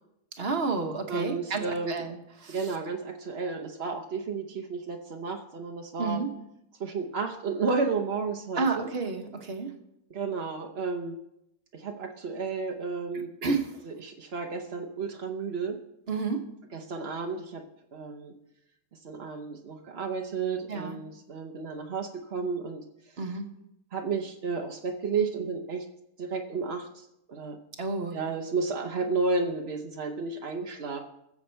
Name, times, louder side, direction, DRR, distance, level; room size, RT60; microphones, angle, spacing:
voice 1, 0.4-2.7 6.0-6.3 8.6-9.7 13.4-13.7 16.1-16.5 20.7-21.0 23.2-23.5 27.8-28.2, right 4 dB, 35° right, 5 dB, 1.1 m, -31 dB
voice 2, 1.1-2.0 2.5-6.2 6.8-8.9 10.1-11.2 11.7-13.3 13.8-15.8 16.7-17.6 17.9-18.3 19.0-22.8 23.9-25.9 26.2-27.6 28.1-31.0, right 4 dB, 55° right, 3 dB, 0.7 m, -32 dB
21.0 x 7.3 x 4.5 m, 0.82 s
omnidirectional pair, 2.4 m